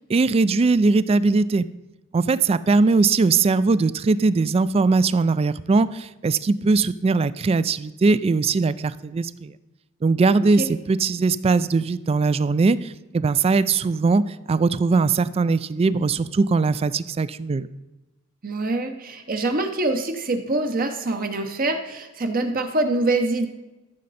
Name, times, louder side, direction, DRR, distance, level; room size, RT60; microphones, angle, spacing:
voice 1, 0.1-1.7 2.1-9.5 10.0-14.2 14.5-17.7, right 4 dB, 30° right, 17 dB, 0.3 m, -20 dB
voice 2, 18.4-23.5, right 2 dB, 45° right, 5 dB, 0.8 m, -24 dB
13.5 x 6.4 x 4.1 m, 1.1 s
head